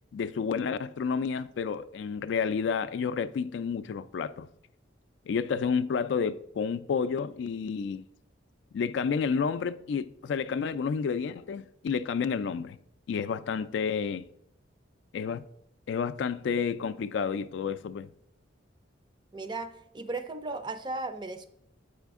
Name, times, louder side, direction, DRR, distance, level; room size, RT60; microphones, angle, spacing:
voice 1, 0.1-4.5 5.3-8.1 8.7-12.8 13.1-14.3 15.1-15.4 15.9-18.1, left 6 dB, 70° left, 0.3 m, -30 dB
voice 2, 19.3-21.4, right 3 dB, 25° right, 0.4 m, -36 dB
8.2 x 5.0 x 3.5 m
head